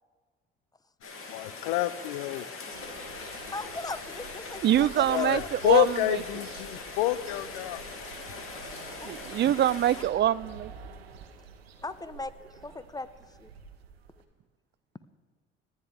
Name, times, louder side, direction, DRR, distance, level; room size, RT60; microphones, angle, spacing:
Rain, 1.0-10.0, left 4 dB, 45° left, 2.6 m, -41 dB
voice 1, 1.3-2.5 5.1-7.8, left 16 dB, 70° left, 17 dB, 0.7 m, -27 dB
sound 1, 2.7-14.2, right 6 dB, 85° right, 1.0 m, -48 dB
voice 2, 3.5-5.5 9.0-9.1 11.8-12.3 12.6-13.1 13.4-13.5, left 2 dB, 10° left, 13 dB, 1.0 m, -38 dB
voice 3, 4.6-6.2 9.0-10.7, right 12 dB, 35° right, 20 dB, 0.5 m, -25 dB
29.0 x 10.5 x 3.5 m, 1.5 s
hypercardioid pair, 55°, 30 cm